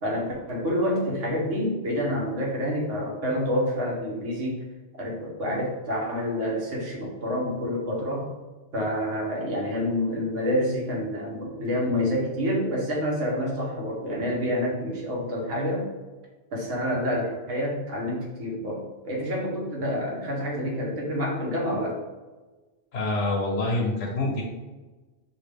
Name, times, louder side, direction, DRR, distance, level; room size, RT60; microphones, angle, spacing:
voice 1, 0.0-4.6 5.0-8.3 8.7-15.9 16.5-21.9, equal, 85° right, -3 dB, 1.5 m, -28 dB
voice 2, 22.9-24.4, left 2 dB, 75° left, -2 dB, 1.0 m, -26 dB
5.8 x 2.4 x 3.4 m, 1.2 s
omnidirectional pair, 1.2 m